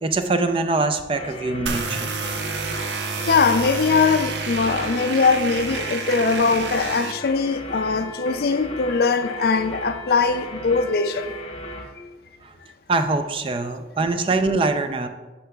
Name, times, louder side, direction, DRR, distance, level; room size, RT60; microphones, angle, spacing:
voice 1, 0.0-2.2 11.7-11.8 12.4-12.5 12.9-15.1, right 3 dB, 30° right, 0.4 m, -23 dB
sound 1, 1.2-11.9, left 1 dB, 30° left, 0.8 m, -36 dB
sound 2, 1.7-7.1, right 4 dB, 75° right, 0.6 m, -29 dB
voice 2, 3.3-11.3, left 4 dB, 55° left, 0.4 m, -21 dB
10.0 x 5.7 x 2.3 m
head